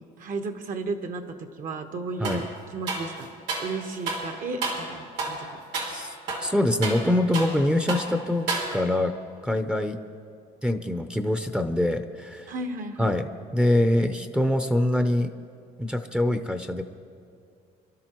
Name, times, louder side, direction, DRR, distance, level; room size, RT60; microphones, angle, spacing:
voice 1, 0.2-2.5 2.7-3.3 3.6-5.6 12.5-13.2, right 3 dB, 50° right, 7 dB, 1.3 m, -34 dB
sound 1, 2.2-2.5 2.9-3.7 4.1-4.3 4.6-4.9 5.2-5.4 5.7-6.0 6.3-7.6 7.9-8.1 8.5-9.0, right 3 dB, 85° right, 3.1 m, -31 dB
voice 2, 6.4-9.1 9.4-10.0 10.6-12.5 13.0-15.3 15.8-16.8, left 1 dB, 5° right, 7 dB, 0.7 m, -24 dB
26.0 x 12.5 x 3.1 m, 2.4 s
cardioid pair, 110°, 17 cm